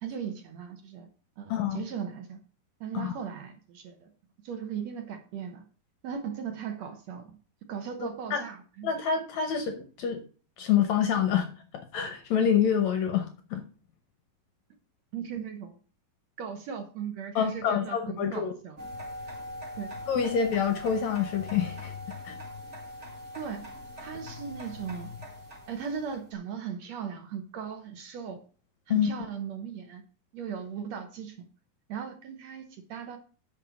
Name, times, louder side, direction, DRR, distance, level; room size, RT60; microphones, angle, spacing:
voice 1, 0.0-1.1 1.4-2.4 2.8-4.1 4.4-5.6 6.0-7.3 7.7-8.9 15.1-15.8 16.4-18.8 19.8-20.0 23.3-23.6 24.0-25.1 25.7-28.4 28.9-30.0 30.3-31.5 31.9-33.2, right 7 dB, 70° right, 6 dB, 1.6 m, -38 dB
voice 2, 1.5-1.8 2.9-3.2 8.3-8.4 8.8-10.2 10.6-11.5 11.7-13.6 17.4-18.5 20.1-21.9 22.2-22.4 28.9-29.1, left 8 dB, 75° left, 8 dB, 1.6 m, -27 dB
sound 1, 18.8-26.2, left 2 dB, 25° right, 1.6 m, -42 dB
8.5 x 6.6 x 6.3 m, 0.40 s
omnidirectional pair, 4.6 m